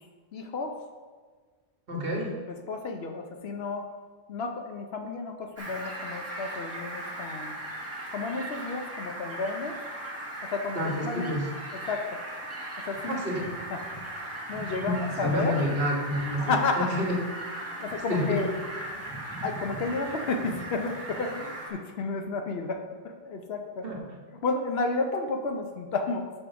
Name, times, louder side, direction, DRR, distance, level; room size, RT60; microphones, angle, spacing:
voice 1, 0.3-0.7 1.9-2.0 2.5-3.9 4.3-7.5 8.1-9.8 10.4-11.3 11.7-12.2 12.9-13.8 14.5-15.5 16.4-16.9 17.8-18.6 19.4-23.8 24.4-26.3, left 3 dB, 65° left, 5 dB, 1.0 m, -32 dB
voice 2, 1.9-2.4 10.7-11.5 13.1-13.4 14.8-17.1 18.1-18.4 23.8-24.2, equal, 55° right, -1 dB, 1.5 m, -29 dB
Fowl, 5.6-21.7, right 1 dB, 15° right, 1.3 m, -38 dB
6.2 x 5.2 x 5.8 m, 1.5 s
omnidirectional pair, 1.2 m